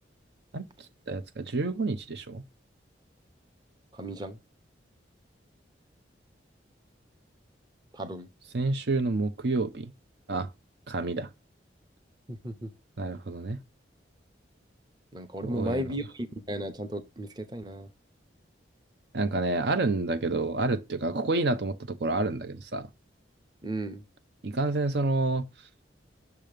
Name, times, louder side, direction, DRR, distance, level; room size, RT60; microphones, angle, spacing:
voice 1, 1.1-2.4 8.5-9.9 10.3-10.5 10.9-11.3 13.0-13.6 15.4-16.0 19.1-22.9 24.4-25.5, right 2 dB, 65° right, 0.7 m, -29 dB
voice 2, 3.9-4.4 7.9-8.3 12.3-12.7 15.1-17.9 23.6-24.0, right 1 dB, 20° right, 0.8 m, -35 dB
6.7 x 3.0 x 5.1 m
head